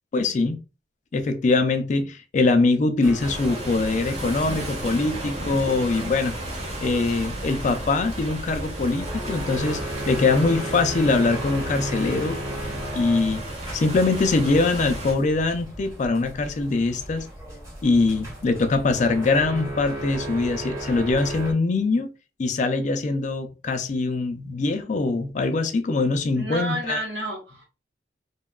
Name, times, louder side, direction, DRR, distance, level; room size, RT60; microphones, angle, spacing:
voice 1, 0.1-0.6 1.1-6.3 6.8-12.4 12.9-13.4 13.7-17.3 17.8-22.1 22.4-27.0, left 3 dB, 45° left, 0.3 m, -23 dB
sound 1, 3.0-21.5, right 1 dB, 15° right, 1.1 m, -36 dB
sound 2, 3.2-15.1, right 1 dB, 40° right, 0.7 m, -34 dB
voice 2, 26.3-27.6, right 1 dB, 80° right, 0.9 m, -30 dB
2.7 x 2.3 x 2.2 m
head